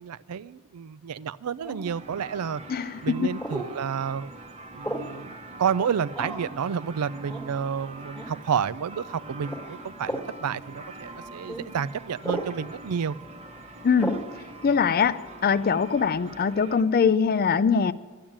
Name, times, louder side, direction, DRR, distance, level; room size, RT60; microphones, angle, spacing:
voice 1, 0.0-2.6 3.0-4.3 4.7-13.2, right 7 dB, 75° right, 0.4 m, -30 dB
sound 1, 1.6-2.0 3.4-3.7 4.8-5.2 6.1-6.5 7.3-7.5 8.1-8.3 9.4-9.6 10.0-10.3 11.5-11.6 12.2-12.5 14.0-14.3, equal, 5° left, 1.5 m, -33 dB
sound 2, 1.8-16.8, right 2 dB, 30° right, 1.0 m, -44 dB
voice 2, 2.7-3.4 13.8-14.2 14.6-17.9, left 6 dB, 40° left, 0.4 m, -22 dB
12.0 x 8.8 x 8.8 m
head